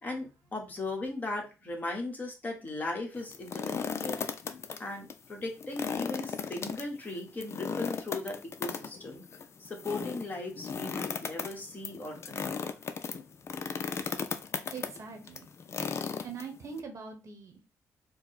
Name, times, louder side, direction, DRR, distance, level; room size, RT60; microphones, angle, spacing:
voice 1, 0.0-4.1 4.8-9.2 9.6-12.7, left 2 dB, 25° left, 0 dB, 1.3 m, -38 dB
sound 1, 3.2-4.8 5.1-5.2 5.6-16.8, left 6 dB, 45° left, 0.4 m, -36 dB
voice 2, 14.7-15.5 15.8-17.7, right 5 dB, 55° right, 4 dB, 1.0 m, -43 dB
4.5 x 2.1 x 4.1 m, 0.31 s
cardioid pair, 100°, 6 cm